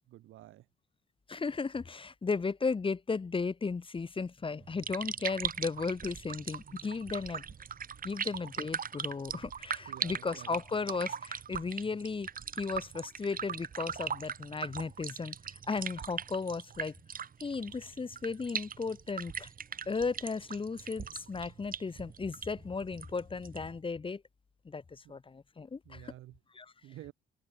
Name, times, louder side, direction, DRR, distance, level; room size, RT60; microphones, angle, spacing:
voice 1, 0.1-0.7 9.3-9.4 9.9-10.5 25.0-25.2 25.8-26.4 26.8-27.1, right 15 dB, 85° right, 5.1 m, -50 dB
voice 2, 1.3-7.4 8.0-12.3 12.6-16.9 17.4-19.5 19.9-24.2 24.6-26.1 26.5-26.7, left 4 dB, 25° left, 1.1 m, -35 dB
sound 1, 4.6-23.8, right 7 dB, 45° right, 2.3 m, -40 dB
cardioid pair, 90°, 20 cm